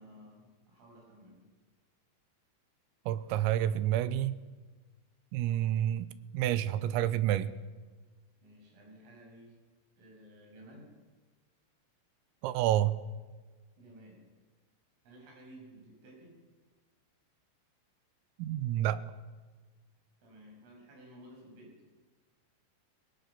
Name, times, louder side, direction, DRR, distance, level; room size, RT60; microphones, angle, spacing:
voice 1, 0.0-1.4 8.4-9.6 10.0-11.0 13.8-14.2 15.0-16.4 20.2-21.8, equal, 70° right, -1 dB, 9.2 m, -54 dB
voice 2, 3.1-4.4 5.3-6.1 6.3-7.5 12.4-13.0 18.4-19.0, right 12 dB, 90° right, 14 dB, 3.6 m, -29 dB
22.0 x 20.5 x 6.9 m, 1.3 s
omnidirectional pair, 5.9 m